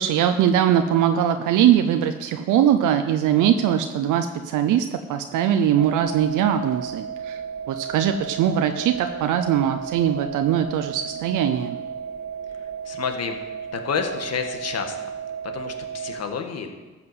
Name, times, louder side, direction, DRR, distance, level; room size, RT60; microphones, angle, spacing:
voice 1, 0.0-7.4 7.7-11.8, right 10 dB, 85° right, 7 dB, 0.7 m, -21 dB
sound 1, 5.8-16.2, right 7 dB, 65° right, 1.5 m, -34 dB
voice 2, 12.5-13.4 13.7-15.0 15.4-16.8, left 6 dB, 55° left, 5 dB, 1.7 m, -30 dB
13.5 x 5.9 x 7.9 m, 1.3 s
cardioid pair, 90°, 30 cm